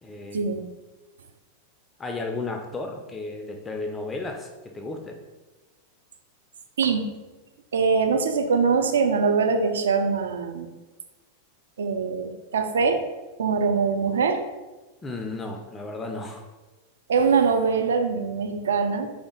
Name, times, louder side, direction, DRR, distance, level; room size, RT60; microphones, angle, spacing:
voice 1, 0.0-0.5 2.0-5.2 15.0-16.4, left 3 dB, 15° left, 3 dB, 0.3 m, -34 dB
voice 2, 7.7-10.7 11.8-13.0 13.4-14.4 17.1-19.1, right 5 dB, 65° right, 6 dB, 0.3 m, -23 dB
3.3 x 2.5 x 3.5 m, 1.2 s
figure-of-eight pair, 90°, 0 cm